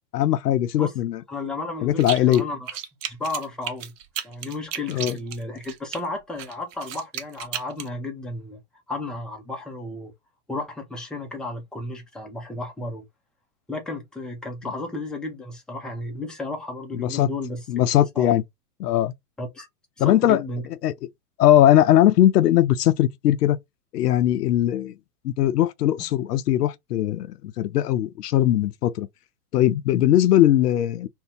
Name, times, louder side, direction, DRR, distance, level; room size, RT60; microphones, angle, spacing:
voice 1, 0.1-1.2 1.8-2.4 4.9-5.1 17.0-17.3 17.7-18.4 18.8-19.1 20.0-20.4 20.8-20.9 21.4-23.6 23.9-24.9 25.2-29.1 29.5-31.1, left 12 dB, 85° left, 0.5 m, -20 dB
voice 2, 1.3-2.7 3.1-3.9 4.2-8.6 8.9-10.1 10.5-13.0 13.7-17.6 18.2-18.3 19.4-19.7 20.0-20.6, left 2 dB, ahead, 0.4 m, -33 dB
sound 1, 2.0-2.4 2.7-6.0 6.4-7.9, right 10 dB, 55° right, 0.7 m, -33 dB
2.6 x 2.2 x 3.6 m
hypercardioid pair, 115°, 46 cm